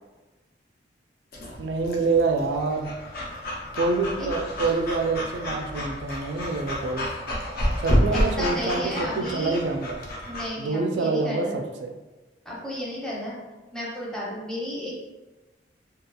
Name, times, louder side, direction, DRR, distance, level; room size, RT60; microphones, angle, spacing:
Breathing / Dog, 1.3-10.5, equal, 55° left, 0.5 m, -29 dB
voice 1, 1.6-3.0 3.8-7.1 7.8-10.0 10.6-11.9, right 3 dB, 70° right, 4 dB, 0.3 m, -26 dB
voice 2, 8.1-9.6 10.2-11.6 12.4-13.4 13.7-15.0, equal, 5° left, -7 dB, 0.6 m, -33 dB
2.8 x 2.3 x 2.2 m, 1.1 s
head